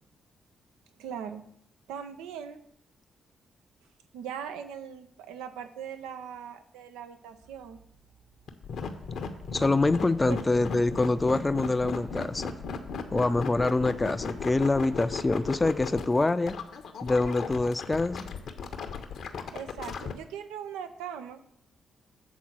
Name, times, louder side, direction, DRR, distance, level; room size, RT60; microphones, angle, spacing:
voice 1, 1.0-1.4 1.9-2.6 4.1-7.8 10.3-10.4 19.5-21.4, right 8 dB, 80° right, 9 dB, 0.5 m, -40 dB
sound 1, 7.3-15.9, right 9 dB, 20° right, 0.9 m, -55 dB
sound 2, 8.5-20.1, left 6 dB, 65° left, 0.7 m, -36 dB
voice 2, 9.5-12.5 13.1-16.6 17.0-18.3, left 2 dB, 25° left, 13 dB, 0.4 m, -25 dB
7.2 x 3.9 x 6.2 m, 0.72 s
hypercardioid pair, 40°, 0 cm